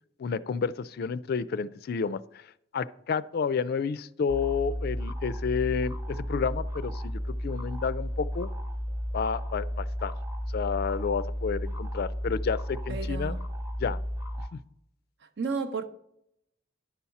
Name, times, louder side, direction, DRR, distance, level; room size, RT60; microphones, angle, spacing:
voice 1, 0.2-2.4 2.7-8.5 9.1-10.1 10.5-13.3 13.8-14.0 14.5-14.6, left 6 dB, 55° left, 0.3 m, -30 dB
sound 1, 4.3-14.5, equal, 15° right, 0.9 m, -33 dB
voice 2, 12.9-13.4 15.4-15.9, right 4 dB, 60° right, 0.8 m, -32 dB
10.5 x 4.1 x 5.8 m
head